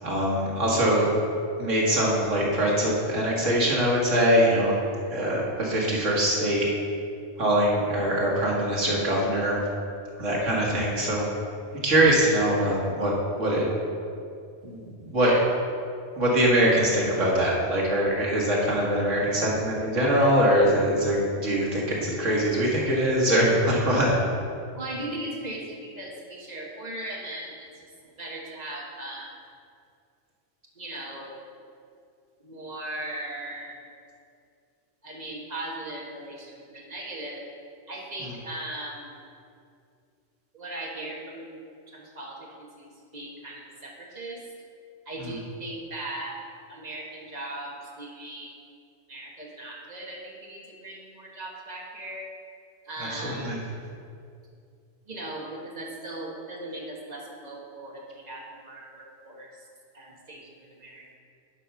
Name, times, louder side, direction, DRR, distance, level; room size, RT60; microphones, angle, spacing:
voice 1, 0.0-1.1 1.6-4.8 5.1-6.7 7.4-9.6 10.2-11.3 11.8-13.7 14.6-15.3 16.2-24.1 45.2-45.3 53.1-53.6, equal, 80° right, -4 dB, 2.2 m, -23 dB
voice 2, 24.7-27.9 28.2-29.3 30.7-31.4 32.4-33.9 35.0-37.5 37.9-39.2 40.5-41.6 41.9-44.4 45.0-46.4 46.7-48.5 49.1-52.3 52.8-53.7 55.0-59.5 59.9-61.1, right 1 dB, 35° right, -3 dB, 1.6 m, -38 dB
11.5 x 4.6 x 5.6 m, 2.4 s
omnidirectional pair, 1.3 m